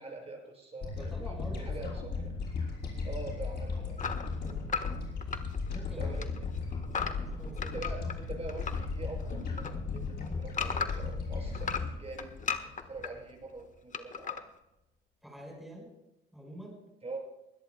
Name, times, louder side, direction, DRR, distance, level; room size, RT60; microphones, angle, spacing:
voice 1, 0.0-2.3 3.0-4.0 6.0-6.6 7.6-14.4 17.0-17.2, right 3 dB, 30° right, 0 dB, 6.6 m, -44 dB
sound 1, 0.8-13.3, left 4 dB, 55° left, 5.5 m, -36 dB
voice 2, 0.9-1.9 4.4-4.7 5.7-6.3 6.9-7.8 15.2-16.0 16.3-16.8, equal, ahead, -2 dB, 5.1 m, -47 dB
sound 2, 4.0-8.9 9.2-11.1 11.5-13.1 13.9-14.4, left 6 dB, 40° left, 1.3 m, -36 dB
23.0 x 16.5 x 2.2 m, 0.90 s
cardioid pair, 90°, 20 cm